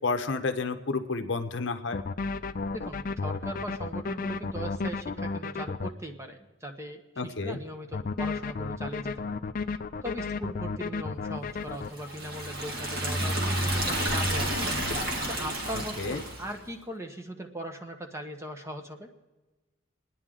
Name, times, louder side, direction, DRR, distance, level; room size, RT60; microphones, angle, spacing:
voice 1, 0.0-2.0 7.2-7.6 16.0-16.2, left 3 dB, 60° left, 8 dB, 0.8 m, -30 dB
sound 1, 1.9-5.9 7.9-11.9, left 4 dB, 40° left, 0.4 m, -33 dB
voice 2, 2.7-9.4 10.0-14.7 15.3-19.1, equal, 15° right, 4 dB, 0.9 m, -39 dB
Liquid, 11.9-16.5, right 1 dB, 50° right, 1.8 m, -30 dB
24.0 x 9.8 x 3.7 m, 1.2 s
head